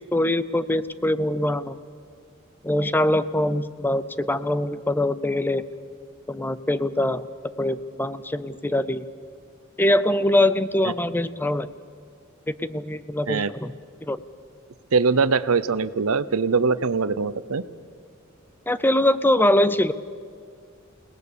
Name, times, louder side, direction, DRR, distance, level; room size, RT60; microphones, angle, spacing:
voice 1, 0.1-1.8 2.6-5.6 6.3-7.3 7.6-9.1 9.8-11.7 12.5-13.7 14.0-14.2 18.7-19.9, left 1 dB, 10° left, 15 dB, 0.5 m, -23 dB
voice 2, 14.9-17.6, right 4 dB, 85° right, 15 dB, 0.7 m, -22 dB
29.0 x 19.0 x 6.9 m, 2.1 s
head